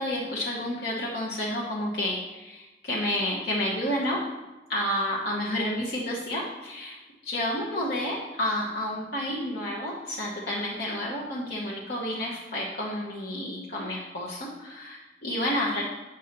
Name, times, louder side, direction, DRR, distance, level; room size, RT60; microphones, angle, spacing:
voice 1, 0.0-4.2 4.7-7.0 7.2-15.8, left 1 dB, 55° left, -5 dB, 1.0 m, -30 dB
8.8 x 6.2 x 3.0 m, 1.1 s
head